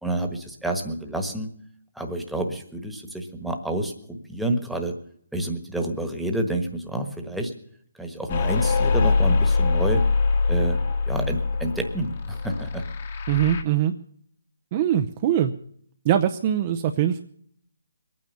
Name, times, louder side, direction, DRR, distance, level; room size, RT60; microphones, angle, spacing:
voice 1, 0.0-1.5 1.9-4.9 5.3-7.5 7.9-10.0 10.5-10.8 11.1-12.8, right 1 dB, ahead, 3 dB, 1.4 m, -29 dB
sound 1, 8.3-13.6, left 4 dB, 40° left, 1.5 m, -23 dB
voice 2, 13.3-13.9 14.7-15.5 16.0-17.2, right 10 dB, 30° right, 7 dB, 0.7 m, -22 dB
21.5 x 9.4 x 6.9 m, 0.65 s
hypercardioid pair, 155°, 0 cm